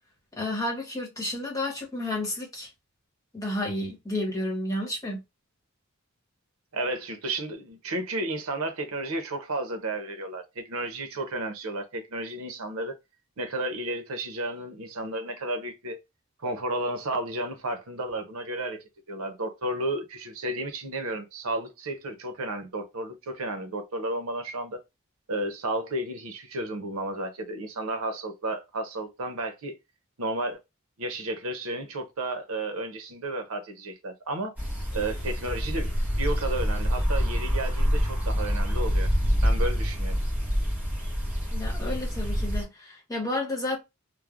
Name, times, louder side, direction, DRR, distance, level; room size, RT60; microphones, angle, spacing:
voice 1, 0.3-2.7 3.3-5.2 41.5-43.8, left 1 dB, 15° left, 1.0 m, -31 dB
voice 2, 6.7-13.0 13.4-16.0 16.4-24.8 25.3-29.7 30.2-30.6 31.0-34.5 34.9-35.9 36.2-39.1 39.4-40.2, right 2 dB, 80° right, 0.7 m, -32 dB
sound 1, 34.6-42.6, equal, 10° right, 0.9 m, -26 dB
3.1 x 2.0 x 2.4 m
head